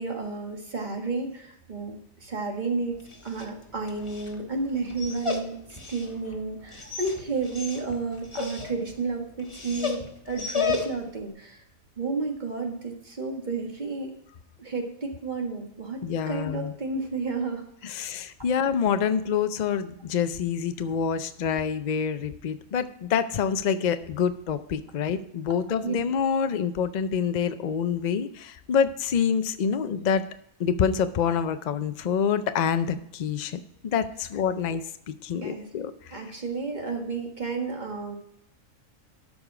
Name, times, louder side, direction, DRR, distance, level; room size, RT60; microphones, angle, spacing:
voice 1, 0.0-11.6 12.0-14.1 14.6-16.0 16.3-18.1 25.8-25.9 35.4-35.7 36.1-38.2, right 3 dB, 35° right, 2 dB, 1.7 m, -32 dB
Dog, 2.9-11.2, left 5 dB, 25° left, 1.3 m, -34 dB
voice 2, 16.0-16.7 17.8-30.2 30.6-36.3, left 7 dB, 65° left, 10 dB, 0.4 m, -27 dB
13.0 x 5.3 x 4.9 m, 0.71 s
omnidirectional pair, 1.4 m